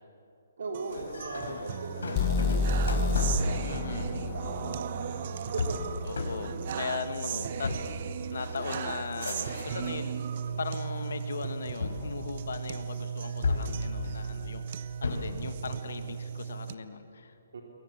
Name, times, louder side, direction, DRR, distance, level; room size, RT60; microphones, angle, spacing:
voice 1, 0.6-5.8 6.0-6.1 7.3-7.5 17.5-17.6, right 3 dB, 60° right, 0 dB, 3.1 m, -40 dB
sound 1, 0.7-16.7, right 8 dB, 30° right, 0.6 m, -37 dB
sound 2, 0.9-10.1 10.4-11.1 11.8-12.9 13.4-15.5, left 4 dB, 90° left, 5.0 m, -36 dB
sound 3, 2.2-6.1, left 3 dB, 20° left, 1.4 m, -29 dB
voice 2, 3.6-4.2 6.1-10.2 10.6-17.3, left 5 dB, 65° left, 8 dB, 1.8 m, -38 dB
27.5 x 22.5 x 7.3 m, 2.6 s
hypercardioid pair, 175°, 0 cm